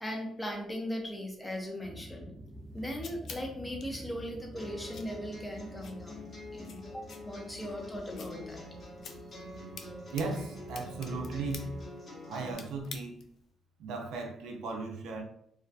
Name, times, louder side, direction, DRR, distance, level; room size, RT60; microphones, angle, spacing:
voice 1, 0.0-2.3 2.7-8.6, equal, 10° left, 0 dB, 0.7 m, -39 dB
sound 1, 1.8-11.9, equal, 20° right, 0.4 m, -49 dB
sound 2, 2.4-13.5, left 5 dB, 65° left, 0.3 m, -51 dB
sound 3, 4.6-12.5, left 2 dB, 35° left, 1.0 m, -46 dB
voice 2, 10.1-11.7 12.3-13.2 13.8-15.2, right 3 dB, 90° right, 2 dB, 0.5 m, -36 dB
2.3 x 2.2 x 2.5 m, 0.71 s
cardioid pair, 90°, 0 cm